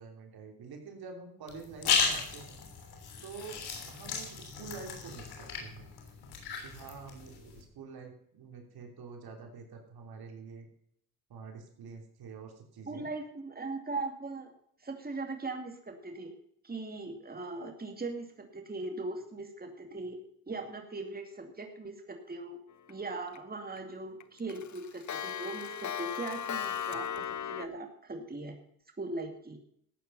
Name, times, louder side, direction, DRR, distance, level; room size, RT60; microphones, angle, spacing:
voice 1, 0.0-2.6 3.2-3.6 3.9-5.9 6.6-10.7 11.3-13.1, right 5 dB, 75° right, 3 dB, 3.2 m, -47 dB
sound 1, 1.5-7.6, left 6 dB, 80° left, 3.3 m, -35 dB
voice 2, 12.9-14.5 14.8-16.3 16.6-20.2 20.5-22.6 22.9-28.5 29.0-29.6, right 3 dB, 25° right, 4 dB, 2.5 m, -39 dB
Clock, 22.9-23.4 23.8-23.9 24.2-27.7, left 8 dB, 50° left, 0.9 m, -36 dB
14.0 x 8.8 x 5.5 m, 0.66 s
cardioid pair, 75°, 37 cm